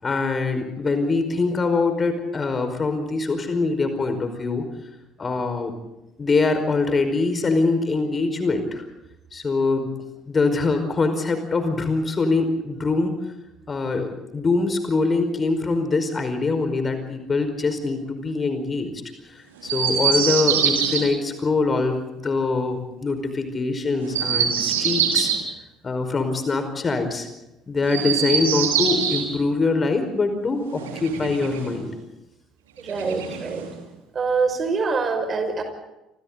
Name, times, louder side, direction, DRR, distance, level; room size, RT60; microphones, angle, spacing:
voice 1, 0.0-4.6 5.2-5.7 6.2-8.8 9.3-9.9 10.3-13.1 13.7-18.9 19.3-25.3 25.8-27.3 27.7-31.9, left 3 dB, 30° left, 8 dB, 5.1 m, -23 dB
Chirp tweet, 19.6-21.0 24.0-25.4 27.8-29.3 30.7-31.8 32.9-33.8, right 7 dB, 70° right, 4.0 m, -24 dB
voice 2, 32.8-33.7 34.1-35.6, right 4 dB, 35° right, 7 dB, 5.9 m, -24 dB
28.0 x 28.0 x 4.0 m, 0.93 s
figure-of-eight pair, 55°, 0 cm